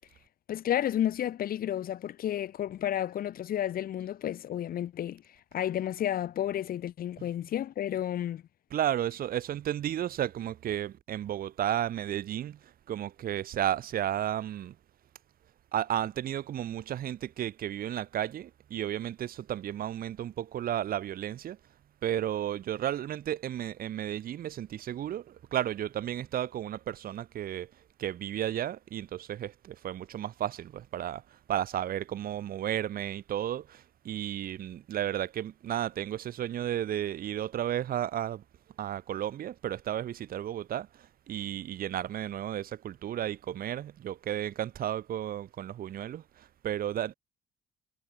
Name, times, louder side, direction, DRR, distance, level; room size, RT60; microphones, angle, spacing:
voice 1, 0.5-5.2 5.5-8.4, left 11 dB, 60° left, 7.5 m, -31 dB
voice 2, 8.7-12.6 12.9-14.7 15.7-21.6 22.0-27.7 28.0-31.2 31.5-38.4 38.8-40.9 41.3-47.1, right 11 dB, 60° right, 5.4 m, -33 dB
cardioid pair, 110°, 17 cm